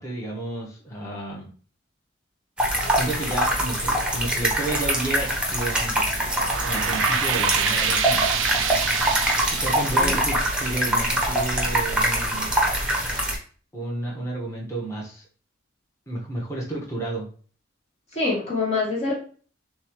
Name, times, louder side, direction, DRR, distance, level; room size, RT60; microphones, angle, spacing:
voice 1, 0.0-1.5 2.9-6.2 6.6-8.2 9.6-12.5 13.7-15.2 16.1-17.3, right 2 dB, 15° left, -3 dB, 1.1 m, -31 dB
sound 1, 2.6-13.3, right 1 dB, 5° right, 0.8 m, -24 dB
sound 2, 6.1-11.4, right 9 dB, 70° right, 0.4 m, -28 dB
voice 2, 18.1-19.1, left 3 dB, 30° left, -4 dB, 0.9 m, -25 dB
6.8 x 2.4 x 3.1 m, 0.42 s
head